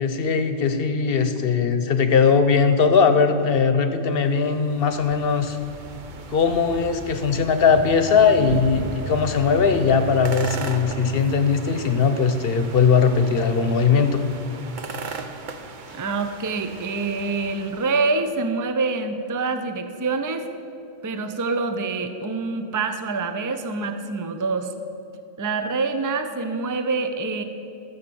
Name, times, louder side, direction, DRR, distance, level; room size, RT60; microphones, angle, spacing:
voice 1, 0.0-5.6 6.3-14.2, left 5 dB, 60° left, 9 dB, 1.0 m, -19 dB
sound 1, 4.1-18.1, right 4 dB, 50° right, 0.8 m, -37 dB
Bowed string instrument, 7.5-12.8, equal, 90° right, 1.2 m, -39 dB
voice 2, 15.9-20.5 21.0-24.7 25.4-27.4, right 3 dB, 25° right, 8 dB, 0.5 m, -26 dB
13.0 x 7.3 x 6.9 m, 2.9 s
omnidirectional pair, 1.1 m